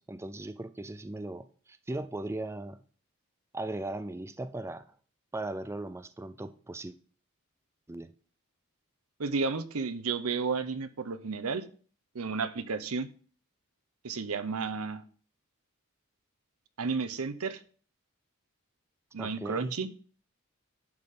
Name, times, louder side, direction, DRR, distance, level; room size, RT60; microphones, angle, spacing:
voice 1, 0.0-2.8 3.5-5.0 5.3-6.9 7.9-8.1 19.2-19.8, right 2 dB, 10° right, 0.4 m, -38 dB
voice 2, 9.2-11.6 12.1-13.1 14.0-15.0 16.8-17.6 19.1-19.9, right 4 dB, 80° right, 0.8 m, -32 dB
10.5 x 3.8 x 6.6 m
head